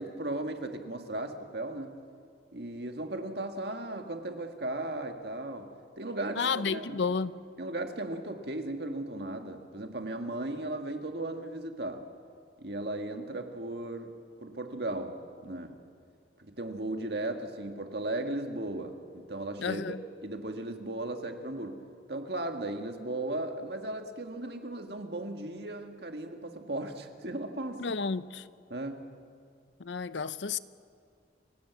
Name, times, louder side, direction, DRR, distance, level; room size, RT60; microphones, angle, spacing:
voice 1, 0.0-2.0 2.5-5.7 6.0-7.0 7.6-12.1 12.6-14.2 14.4-15.8 16.4-20.0 20.2-28.0 28.7-29.1, right 2 dB, 60° right, 1.8 m, -36 dB
voice 2, 6.4-7.4 19.6-20.0 27.8-28.4 29.8-30.6, left 5 dB, 80° left, 0.7 m, -31 dB
28.5 x 16.5 x 8.2 m
head